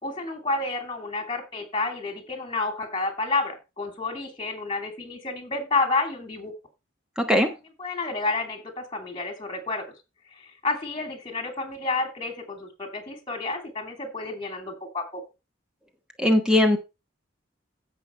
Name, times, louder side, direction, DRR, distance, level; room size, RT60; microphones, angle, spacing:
voice 1, 0.0-6.5 7.8-9.8 10.3-15.2, left 3 dB, 25° left, 6 dB, 2.9 m, -30 dB
voice 2, 7.2-7.5 16.2-16.8, left 1 dB, 5° right, 5 dB, 1.2 m, -19 dB
15.5 x 5.9 x 4.5 m, 0.27 s
head